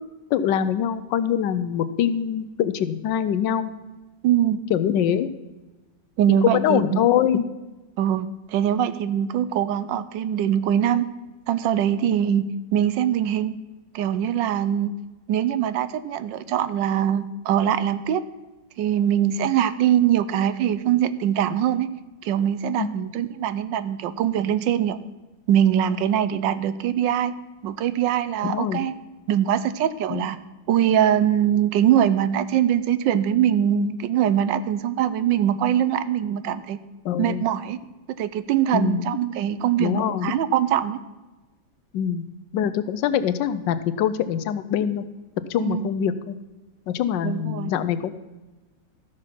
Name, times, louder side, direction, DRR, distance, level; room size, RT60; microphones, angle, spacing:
voice 1, 0.3-3.7 4.7-5.3 6.4-7.4 22.8-22.9 28.4-28.8 30.1-30.3 37.0-37.4 38.7-39.1 39.8-40.3 41.9-42.2 42.5-45.0 45.5-46.3 46.9-48.1, left 9 dB, 80° left, 12 dB, 1.3 m, -23 dB
voice 2, 4.2-4.6 6.2-7.0 8.0-11.1 11.5-13.5 13.9-14.9 15.3-18.2 18.8-21.9 22.2-25.0 25.5-27.3 27.6-28.9 29.3-30.4 30.7-36.8 37.2-37.8 38.2-41.0 45.6-45.9 47.2-47.7, right 10 dB, 80° right, 14 dB, 1.3 m, -22 dB
13.5 x 6.4 x 5.8 m, 1.1 s
omnidirectional pair, 2.0 m